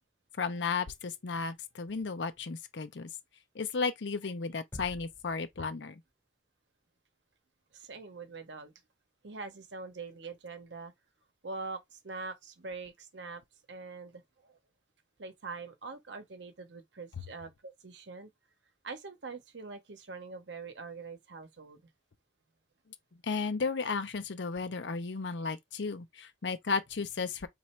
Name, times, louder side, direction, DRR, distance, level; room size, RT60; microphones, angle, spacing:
voice 1, 0.4-3.1 3.5-6.0 23.2-27.5, left 4 dB, 75° left, 0.6 m, -34 dB
sound 1, 4.7-6.1, left 1 dB, 10° left, 0.5 m, -49 dB
voice 2, 7.7-8.7 9.2-10.9 11.4-14.6 15.2-18.3 18.8-21.9, right 4 dB, 75° right, 0.9 m, -44 dB
3.1 x 2.5 x 4.4 m
head